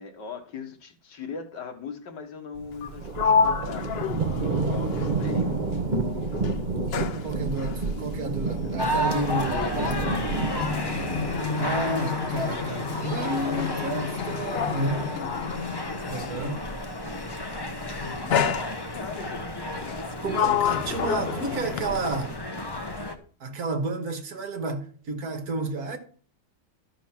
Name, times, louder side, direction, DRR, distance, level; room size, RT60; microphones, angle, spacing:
voice 1, 0.0-4.1 4.6-5.6 9.0-10.8 14.2-15.3 15.9-16.6 17.7-20.0, left 5 dB, 85° left, 2.1 m, -41 dB
sound 1, 2.5-11.6, right 3 dB, 35° right, 0.9 m, -29 dB
Sliding door, 2.7-6.0 6.3-16.5 17.4-17.7 18.3-19.2 19.8-22.3, left 7 dB, 60° left, 0.6 m, -30 dB
voice 2, 7.2-9.9 11.6-15.1 16.1-16.6 20.2-22.4 23.4-26.0, right 2 dB, 60° right, 1.9 m, -31 dB
sound 2, 8.8-23.2, left 1 dB, 20° left, 0.7 m, -32 dB
12.5 x 5.2 x 5.9 m
omnidirectional pair, 1.8 m